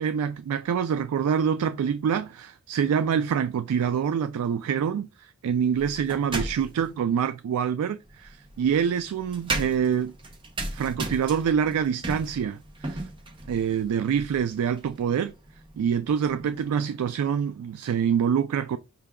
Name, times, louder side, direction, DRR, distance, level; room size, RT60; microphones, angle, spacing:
voice 1, 0.0-10.1 10.7-13.1 13.5-15.3 15.8-18.8, right 7 dB, 75° right, 0.3 m, -26 dB
sound 1, 5.8-6.9 8.1-16.7, right 2 dB, 20° right, 0.5 m, -36 dB
5.6 x 2.2 x 3.5 m
head